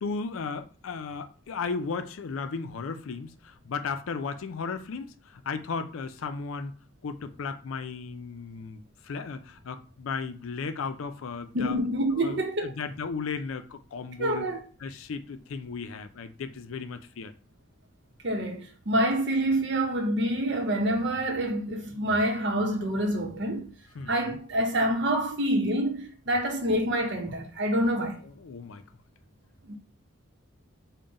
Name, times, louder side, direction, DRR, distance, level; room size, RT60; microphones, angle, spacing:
voice 1, 0.0-6.7 7.0-11.8 12.1-14.5 14.8-17.3 23.9-24.4 28.4-28.8, left 5 dB, 85° left, 0.4 m, -35 dB
voice 2, 11.5-12.7 14.2-14.6 18.2-23.7 24.1-28.2 29.6-29.8, right 1 dB, 55° right, 0.8 m, -27 dB
3.7 x 2.2 x 3.9 m
head